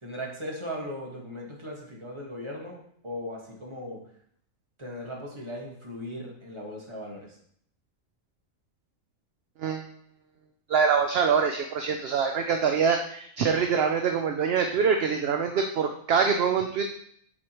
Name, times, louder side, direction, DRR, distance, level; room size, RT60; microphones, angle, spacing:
voice 1, 0.0-2.8 3.0-4.0 4.8-7.4, equal, 20° right, -2 dB, 1.5 m, -38 dB
voice 2, 10.7-16.8, right 6 dB, 60° right, 5 dB, 0.7 m, -24 dB
8.2 x 4.9 x 3.0 m, 0.66 s
omnidirectional pair, 1.4 m